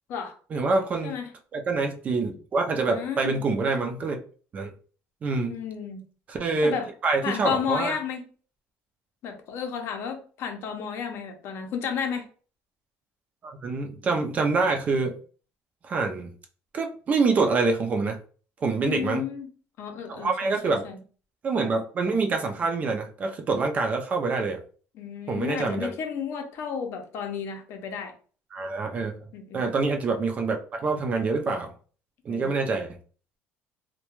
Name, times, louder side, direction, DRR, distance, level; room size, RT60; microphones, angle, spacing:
voice 1, 0.5-1.1 1.5-4.2 4.5-4.7 5.2-5.6 6.3-6.8 7.0-8.0 13.4-15.2 15.8-16.3 16.7-18.2 18.6-19.2 20.1-20.8 21.4-24.6 25.3-25.9 28.5-29.2 29.5-31.7 32.2-33.0, right 3 dB, 30° right, 3 dB, 0.4 m, -26 dB
voice 2, 2.9-3.4 5.5-6.0 6.6-6.9 7.2-8.3 9.2-12.3 18.8-19.5 19.8-21.0 24.9-28.1 29.3-29.6 32.3-32.6, left 7 dB, 55° left, 4 dB, 0.6 m, -32 dB
2.3 x 2.1 x 3.0 m, 0.40 s
cardioid pair, 145°, 5 cm